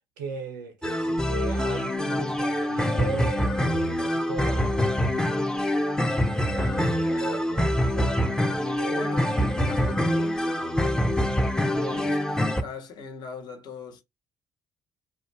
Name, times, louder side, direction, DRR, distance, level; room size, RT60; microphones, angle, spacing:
voice 1, 0.2-5.4 6.2-9.0 11.7-12.1, right 3 dB, 75° right, 0.4 m, -38 dB
sound 1, 0.8-12.6, equal, 5° left, 0.5 m, -25 dB
voice 2, 8.9-11.2 11.8-14.0, left 4 dB, 50° left, 0.8 m, -40 dB
2.4 x 2.1 x 3.0 m
figure-of-eight pair, 50°, 10 cm